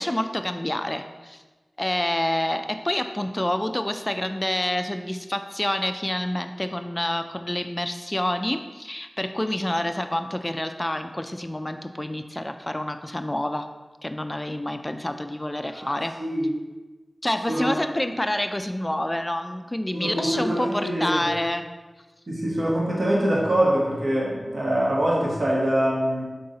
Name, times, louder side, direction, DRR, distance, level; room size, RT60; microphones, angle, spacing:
voice 1, 0.0-1.4 1.8-13.7 14.0-16.2 17.2-21.7, left 1 dB, 20° left, 8 dB, 0.3 m, -28 dB
voice 2, 15.7-16.5 17.5-17.7 19.9-21.2 22.3-26.2, right 1 dB, 60° right, -5 dB, 1.2 m, -24 dB
5.5 x 4.7 x 3.8 m, 1.2 s
wide cardioid pair, 70°, 0 cm